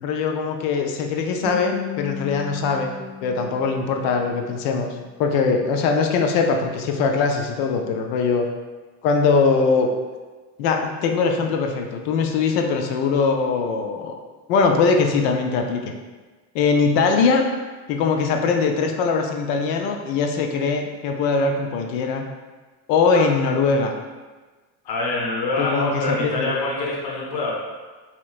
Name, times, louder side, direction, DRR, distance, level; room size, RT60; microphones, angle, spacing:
voice 1, 0.0-2.9 3.2-4.9 5.2-8.5 9.0-9.9 10.6-14.1 14.5-15.9 16.5-17.4 17.9-22.2 22.9-23.9 25.6-26.5, left 4 dB, 85° left, 3 dB, 0.6 m, -21 dB
Guitar, 1.4-4.5, left 6 dB, 15° right, 0.5 m, -35 dB
voice 2, 24.8-27.5, left 2 dB, 55° left, -3 dB, 1.0 m, -25 dB
4.3 x 2.9 x 2.4 m, 1.3 s
supercardioid pair, 65°, 49 cm